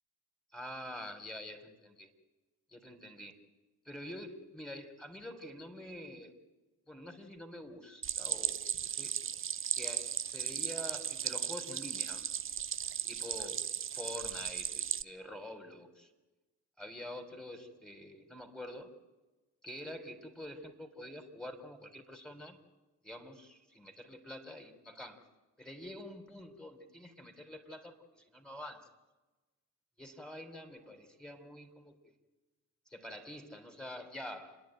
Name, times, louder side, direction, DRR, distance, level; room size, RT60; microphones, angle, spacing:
voice 1, 0.5-2.1 2.7-3.4 3.9-6.3 6.9-9.1 9.7-12.3 13.1-13.7 13.9-16.1 16.8-18.9 19.6-22.6 23.0-25.2 25.6-28.9 30.0-32.1 32.9-34.6, left 1 dB, ahead, 7 dB, 3.7 m, -47 dB
Stream, 8.0-15.0, right 8 dB, 30° right, 0.7 m, -36 dB
29.5 x 10.5 x 9.1 m, 1.1 s
figure-of-eight pair, 45°, 40 cm